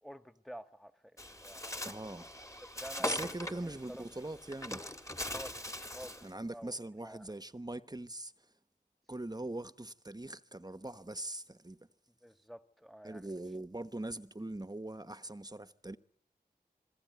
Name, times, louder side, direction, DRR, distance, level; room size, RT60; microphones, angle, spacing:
voice 1, 0.0-1.0 1.4-1.8 2.6-4.0 5.3-6.2 6.5-6.8 7.0-7.3 12.1-13.3, equal, ahead, 1.5 m, -49 dB
Bird, 1.2-6.3, left 1 dB, 20° left, 2.0 m, -41 dB
voice 2, 1.8-2.3 3.0-4.8 6.2-8.3 9.1-11.8 13.0-16.0, right 1 dB, 25° right, 1.0 m, -42 dB
27.5 x 21.5 x 9.4 m
cardioid pair, 45°, 17 cm